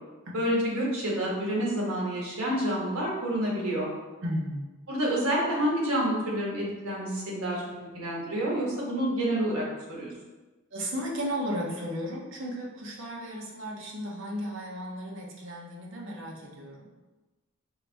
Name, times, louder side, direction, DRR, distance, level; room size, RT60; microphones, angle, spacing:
voice 1, 0.3-3.9 4.9-9.6 9.9-10.1, right 1 dB, 80° right, -4 dB, 1.3 m, -28 dB
voice 2, 4.2-4.6 10.7-16.8, equal, 60° right, -2 dB, 0.8 m, -34 dB
4.6 x 2.6 x 3.4 m, 1.2 s
head